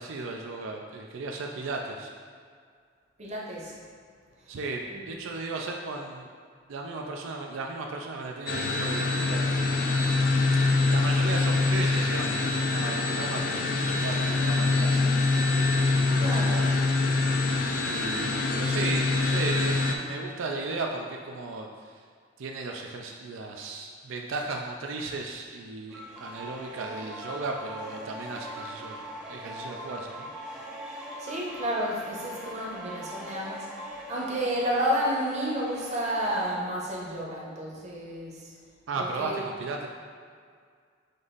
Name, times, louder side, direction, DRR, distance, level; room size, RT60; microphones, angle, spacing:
voice 1, 0.0-2.1 4.5-6.3 6.7-10.2 10.9-16.6 17.1-17.2 17.8-22.0 22.4-30.3 38.9-39.9, right 3 dB, 90° right, 1 dB, 0.4 m, -36 dB
voice 2, 3.2-3.8 4.4-4.5 4.9-5.1 16.2-16.6 31.2-38.5 38.9-39.4, equal, 35° right, -4 dB, 0.8 m, -31 dB
sound 1, 8.5-19.9, left 3 dB, 45° left, 0.3 m, -25 dB
sound 2, 25.9-36.6, equal, 5° right, 0.6 m, -41 dB
5.2 x 2.5 x 3.8 m, 2.1 s
head